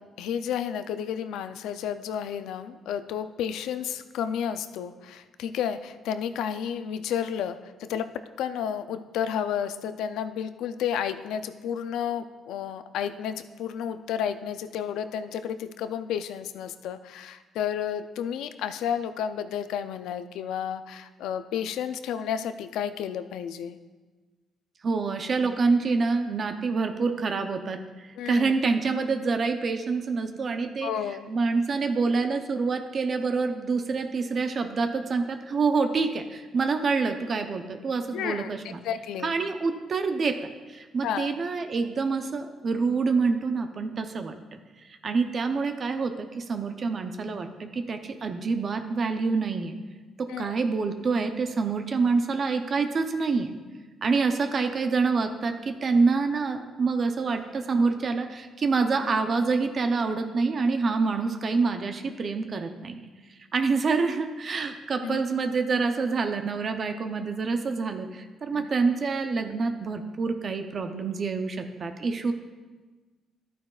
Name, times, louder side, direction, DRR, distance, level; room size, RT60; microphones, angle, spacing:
voice 1, 0.0-8.1 8.4-23.8 28.2-28.5 30.8-31.3 38.1-39.3 41.0-41.3 50.3-50.5 65.0-65.2 68.5-68.7, left 8 dB, 85° left, 11 dB, 0.4 m, -31 dB
voice 2, 24.8-30.9 31.3-38.8 39.2-44.6 45.0-49.7 50.2-53.5 54.0-63.0 63.5-72.3, right 4 dB, 50° right, 6 dB, 0.6 m, -27 dB
12.0 x 9.2 x 2.4 m, 1.3 s
cardioid pair, 90°, 0 cm